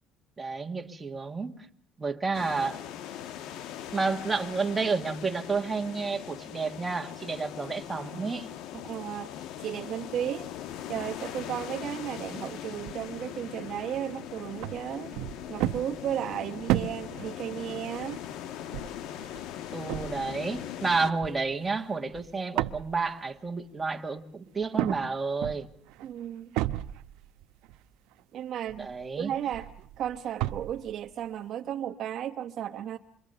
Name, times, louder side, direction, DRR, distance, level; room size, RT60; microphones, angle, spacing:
voice 1, 0.4-1.7 2.0-2.8 3.9-8.5 19.7-25.7 28.8-29.3, right 4 dB, 10° right, 1.7 m, -30 dB
sound 1, 2.3-21.1, left 11 dB, 60° left, 1.2 m, -40 dB
voice 2, 8.8-9.3 9.6-10.5 10.9-15.2 15.5-18.2 26.0-26.6 28.3-28.9 29.2-29.7 30.0-33.0, right 10 dB, 40° right, 1.0 m, -34 dB
sound 2, 12.8-13.0 13.8-14.0 14.6-22.3 22.6-23.0 24.6-25.1 25.4-26.1 26.5-27.8 28.2-28.3 28.7-30.9, right 14 dB, 70° right, 0.9 m, -33 dB
27.5 x 23.0 x 6.7 m
cardioid pair, 160°, 0 cm